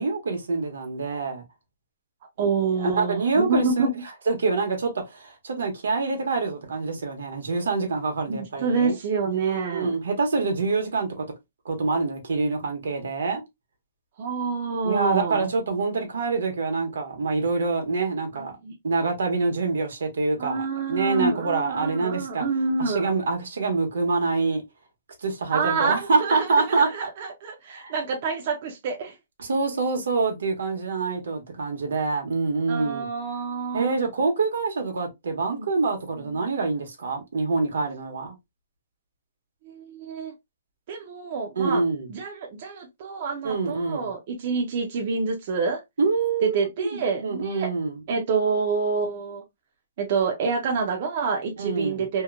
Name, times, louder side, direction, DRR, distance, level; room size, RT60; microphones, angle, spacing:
voice 1, 0.0-1.4 2.4-2.5 2.8-3.9 4.3-8.9 9.3-11.2 11.6-13.4 14.8-18.5 18.8-22.4 22.8-24.6 25.2-26.9 27.8-27.9 29.4-33.1 33.7-38.3 41.6-42.1 43.4-44.1 46.0-48.0 51.6-52.0, right 4 dB, 80° right, 1.0 m, -26 dB
voice 2, 2.4-3.9 8.3-9.9 14.2-15.5 18.3-18.7 20.4-23.1 25.5-29.2 32.7-34.0 35.5-35.7 36.2-36.4 39.6-40.3 40.9-41.8 42.1-45.8 46.4-47.7 48.1-49.4 50.0-52.2, right 5 dB, 35° right, 0.5 m, -27 dB
2.8 x 2.1 x 2.4 m
hypercardioid pair, 175°, 0 cm